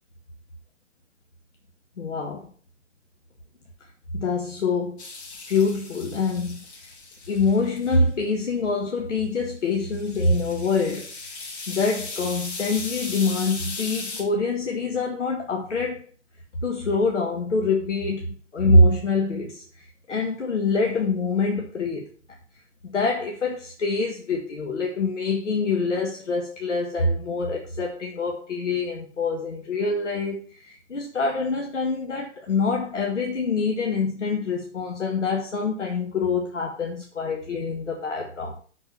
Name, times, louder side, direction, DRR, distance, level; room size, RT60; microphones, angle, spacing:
voice 1, 2.0-2.5 4.1-5.0 5.5-6.9 7.3-11.1 11.7-16.0 16.6-22.1 22.8-38.6, left 3 dB, 80° left, 2.0 m, -25 dB
sound 1, 5.0-8.0 9.7-14.2, left 3 dB, 65° left, 4.7 m, -37 dB
7.0 x 6.7 x 7.1 m
hypercardioid pair, 135°, 36 cm